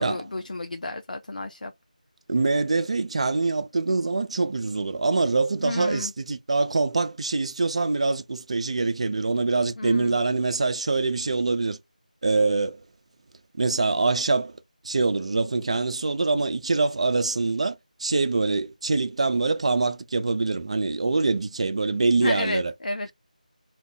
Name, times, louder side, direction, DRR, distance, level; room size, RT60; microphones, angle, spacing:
voice 1, 0.0-1.7 5.6-6.1 9.8-10.2 22.2-23.1, left 2 dB, 70° left, 0.4 m, -32 dB
voice 2, 2.3-11.8 12.2-12.8 13.6-14.6 14.8-22.7, right 3 dB, 45° right, 0.3 m, -24 dB
2.2 x 2.1 x 3.5 m
figure-of-eight pair, 165°, 5 cm